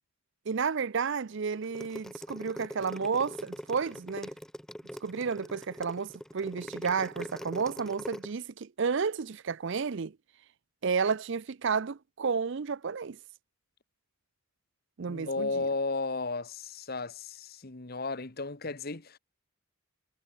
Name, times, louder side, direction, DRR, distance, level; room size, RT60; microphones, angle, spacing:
voice 1, 0.5-4.3 5.0-10.2 10.8-13.2 15.0-15.7, right 5 dB, 55° right, 0.5 m, -31 dB
sound 1, 1.6-8.3, equal, ahead, 1.0 m, -42 dB
voice 2, 15.1-19.2, left 3 dB, 40° left, 1.2 m, -34 dB
head